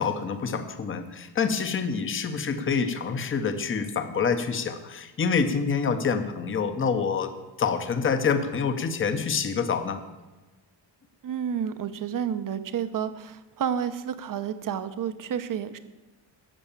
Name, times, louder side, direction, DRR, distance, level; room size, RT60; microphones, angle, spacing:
voice 1, 0.0-7.3 7.6-10.0, left 5 dB, 25° left, 9 dB, 0.9 m, -27 dB
voice 2, 11.2-15.8, right 8 dB, 45° right, 12 dB, 0.9 m, -30 dB
12.5 x 7.9 x 7.2 m, 1.2 s
cardioid pair, 165°, 45 cm